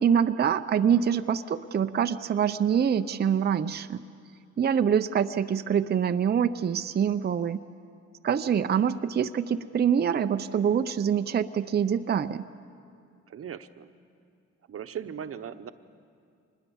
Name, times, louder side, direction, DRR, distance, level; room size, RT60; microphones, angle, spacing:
voice 1, 0.0-4.0 4.6-7.6 8.2-12.5, right 8 dB, 35° right, 8 dB, 0.6 m, -25 dB
voice 2, 13.3-13.9 14.7-15.7, right 8 dB, 50° right, 10 dB, 1.0 m, -38 dB
25.5 x 20.5 x 7.1 m, 2.3 s
cardioid pair, 90°, 30 cm